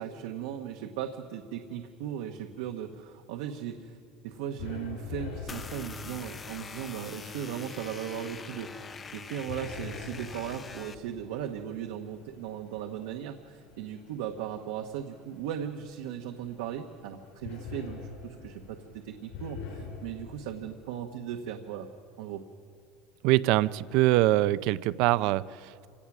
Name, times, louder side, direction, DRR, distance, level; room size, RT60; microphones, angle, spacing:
voice 1, 0.0-4.0 4.2-21.9 22.2-22.4, right 9 dB, 80° right, 3 dB, 1.1 m, -37 dB
sound 1, 4.3-20.7, left 5 dB, 70° left, 6.0 m, -46 dB
sound 2, 5.5-11.0, left 5 dB, 20° left, 0.6 m, -43 dB
voice 2, 23.2-25.9, right 16 dB, 55° right, 17 dB, 0.5 m, -24 dB
26.0 x 17.0 x 6.1 m, 2.3 s
cardioid pair, 160°, 0 cm